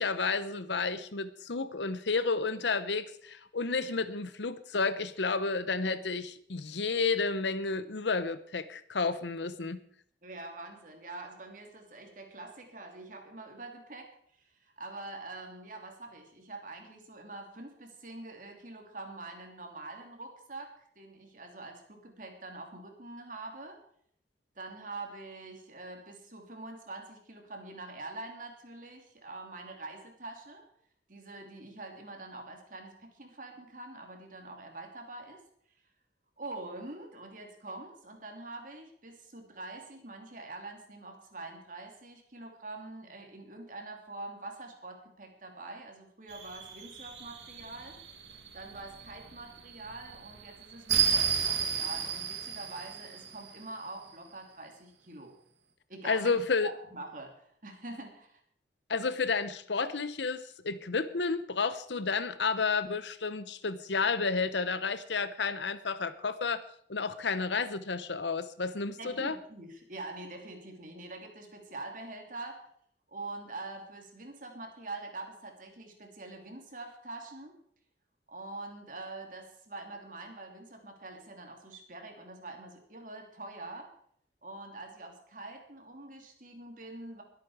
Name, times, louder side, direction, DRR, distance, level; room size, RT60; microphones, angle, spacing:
voice 1, 0.0-9.8 56.0-56.7 58.9-66.6 66.9-69.4, left 4 dB, 85° left, 13 dB, 0.9 m, -31 dB
voice 2, 10.2-14.1 14.6-23.8 24.6-30.7 31.1-35.4 36.4-48.0 48.5-55.3 55.9-58.4 69.0-72.7 73.1-77.6 78.3-83.9 84.4-87.2, right 2 dB, 50° right, 3 dB, 2.9 m, -45 dB
sound 1, 46.3-53.8, right 8 dB, 85° right, 2.1 m, -33 dB
22.5 x 8.5 x 4.9 m, 0.64 s
head